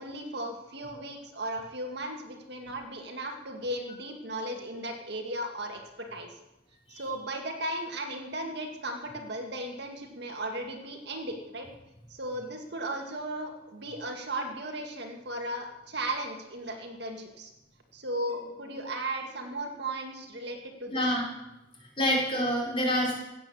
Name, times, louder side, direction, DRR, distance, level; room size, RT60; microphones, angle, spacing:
voice 1, 0.0-5.8 6.1-6.3 6.9-11.7 12.1-17.5 17.9-21.0, right 1 dB, 60° right, 3 dB, 2.1 m, -36 dB
voice 2, 20.9-21.3 22.0-23.1, equal, 30° left, -3 dB, 5.0 m, -27 dB
15.5 x 9.3 x 7.1 m, 0.92 s
head